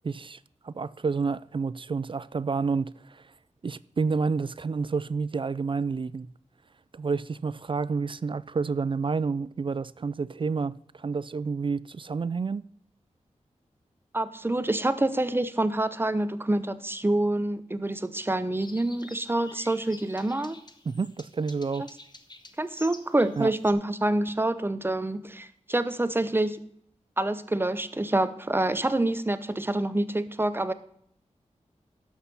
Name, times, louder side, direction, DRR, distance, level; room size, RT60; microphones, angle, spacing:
voice 1, 0.0-0.4 0.6-3.3 3.6-6.3 6.9-12.7 20.9-21.9 23.4-23.5, right 4 dB, 40° right, 0.3 m, -29 dB
voice 2, 14.1-20.6 22.6-26.6 27.2-30.7, right 1 dB, 15° right, 0.7 m, -27 dB
sound 1, 18.5-23.7, left 2 dB, 35° left, 1.1 m, -49 dB
11.5 x 6.4 x 5.5 m
wide cardioid pair, 80°, 13 cm